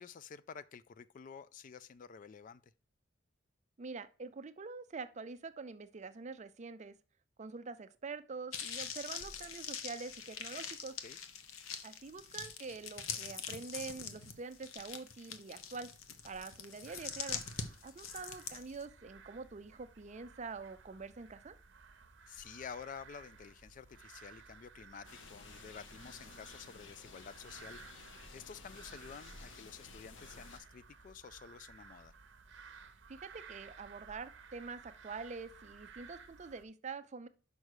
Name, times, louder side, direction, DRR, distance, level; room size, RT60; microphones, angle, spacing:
voice 1, 0.0-2.7 11.0-11.2 17.3-17.4 22.3-32.2, left 6 dB, 40° left, 0.3 m, -51 dB
voice 2, 3.8-7.0 7.4-10.9 11.8-15.9 16.2-17.4 17.8-21.5 33.1-37.3, right 4 dB, 35° right, 0.5 m, -45 dB
sound 1, 8.5-18.8, left 7 dB, 90° left, 0.9 m, -44 dB
sound 2, 16.9-36.6, right 5 dB, 60° right, 0.8 m, -57 dB
sound 3, 25.0-30.6, left 3 dB, 65° left, 1.0 m, -53 dB
6.2 x 5.4 x 4.8 m
head